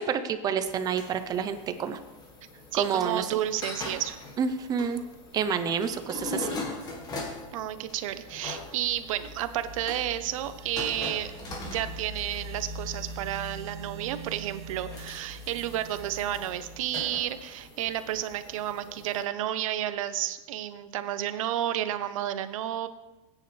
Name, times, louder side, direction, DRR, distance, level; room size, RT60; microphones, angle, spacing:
voice 1, 0.0-2.0 2.7-3.3 4.4-5.0 5.3-6.5, right 7 dB, 20° right, 10 dB, 0.7 m, -28 dB
sound 1, 0.7-19.2, left 2 dB, 20° left, 1.8 m, -42 dB
voice 2, 2.7-4.2 7.5-11.3 11.6-22.9, right 12 dB, 75° right, 11 dB, 1.0 m, -31 dB
sound 2, 7.7-18.3, right 2 dB, 55° right, 1.3 m, -43 dB
18.5 x 9.6 x 3.3 m, 1.1 s
supercardioid pair, 160°, 17 cm